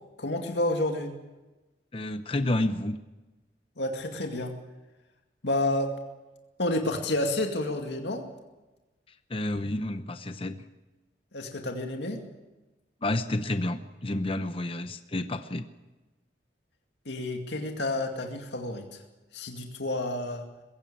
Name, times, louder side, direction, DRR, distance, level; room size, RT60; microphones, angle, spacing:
voice 1, 0.2-1.1 3.8-4.5 5.4-5.9 6.6-8.2 11.3-12.2 17.1-19.0 19.3-20.5, left 1 dB, 75° left, 3 dB, 2.2 m, -30 dB
voice 2, 1.9-3.0 9.3-10.6 13.0-15.7, left 1 dB, 30° left, 9 dB, 0.8 m, -30 dB
21.0 x 16.5 x 8.7 m, 1.1 s
head